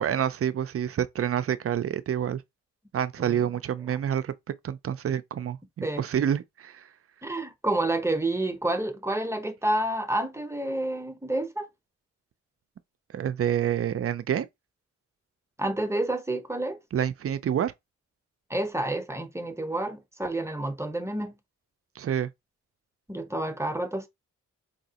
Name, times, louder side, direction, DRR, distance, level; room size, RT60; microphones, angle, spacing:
voice 1, 0.0-2.4 2.9-4.3 4.6-6.8 13.1-14.5 16.9-17.7 22.0-22.3, right 9 dB, 50° right, 0.5 m, -28 dB
voice 2, 7.2-11.7 15.6-16.8 18.5-21.3 23.1-24.1, right 1 dB, 10° right, 0.8 m, -29 dB
3.9 x 2.8 x 2.8 m
cardioid pair, 65°, 30 cm